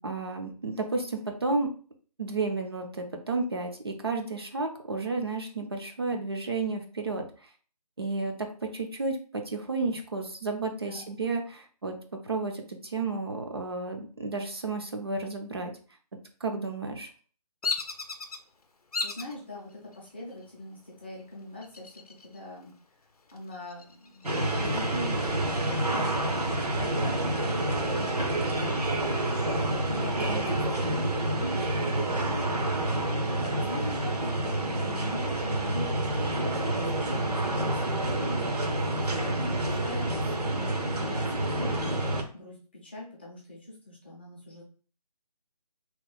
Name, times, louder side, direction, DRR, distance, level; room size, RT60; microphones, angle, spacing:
voice 1, 0.0-1.7 2.2-7.2 8.0-12.0 12.2-15.7 16.4-17.1 30.3-30.4, right 3 dB, 40° right, 3 dB, 0.5 m, -32 dB
voice 2, 10.7-11.1 19.0-22.7 23.3-26.1 26.4-28.7 29.5-32.5 33.2-38.8 39.1-42.0 42.3-44.6, left 1 dB, 15° left, -4 dB, 0.5 m, -43 dB
Bird vocalization bird call bird song, 17.6-18.4 18.9-19.3 19.9-20.4 21.6-22.4 22.7-22.8 23.3-24.7, left 4 dB, 70° left, 0.5 m, -34 dB
sound 1, 24.2-42.2, right 1 dB, 75° right, 0.8 m, -28 dB
2.9 x 2.2 x 3.9 m, 0.40 s
figure-of-eight pair, 150°, 20 cm